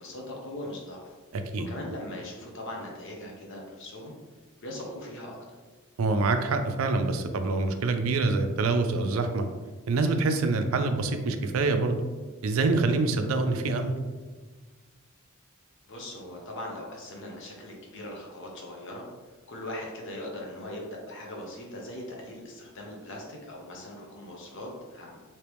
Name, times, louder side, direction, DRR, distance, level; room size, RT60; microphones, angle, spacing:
voice 1, 0.0-1.1 1.7-4.1 4.6-5.4 15.9-19.0 19.5-25.2, left 1 dB, 60° left, -1 dB, 0.8 m, -40 dB
voice 2, 1.3-1.7 6.0-9.5 9.9-12.0 12.4-13.9, right 3 dB, 70° right, 7 dB, 0.4 m, -26 dB
3.3 x 2.9 x 3.0 m, 1.3 s
head